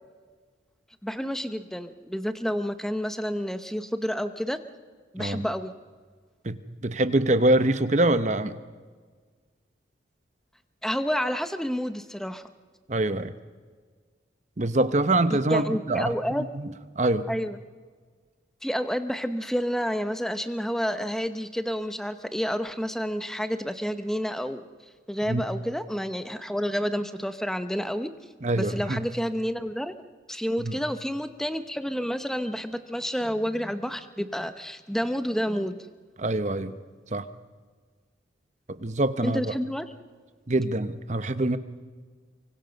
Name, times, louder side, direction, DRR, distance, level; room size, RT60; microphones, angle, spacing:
voice 1, 1.0-4.6 5.1-5.7 10.8-12.4 15.3-16.5 17.3-17.6 18.6-24.6 25.1-28.1 28.5-29.9 30.3-35.8 39.2-39.9, equal, ahead, 10 dB, 0.9 m, -29 dB
voice 2, 6.4-8.5 12.9-13.3 14.6-16.7 17.0-17.3 25.3-25.4 28.4-29.1 30.6-30.8 36.2-36.7 37.1-37.3 38.7-39.4 40.5-41.6, right 2 dB, 40° right, 12 dB, 0.9 m, -25 dB
24.5 x 24.0 x 5.3 m, 1.5 s
head